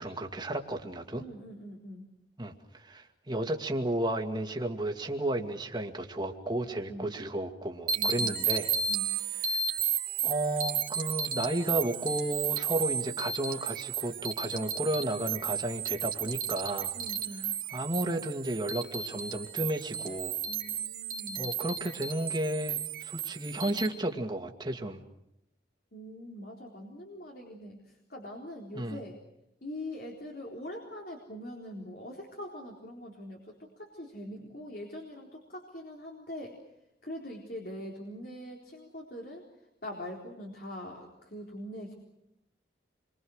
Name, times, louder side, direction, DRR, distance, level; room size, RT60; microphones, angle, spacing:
voice 1, 0.0-1.2 2.4-8.7 9.1-9.7 10.2-17.0 17.4-20.4 21.4-25.0 28.7-29.0, right 1 dB, 25° right, 4 dB, 2.2 m, -33 dB
voice 2, 1.2-2.1 6.9-7.1 8.0-8.4 8.9-9.1 16.9-17.5 20.4-21.5 25.9-27.8 28.1-29.2 29.6-36.6 37.0-39.4 39.8-41.9, left 1 dB, 55° left, 0 dB, 4.0 m, -43 dB
sound 1, 7.9-23.9, right 7 dB, 50° right, 2.2 m, -33 dB
29.0 x 24.0 x 6.5 m, 0.83 s
head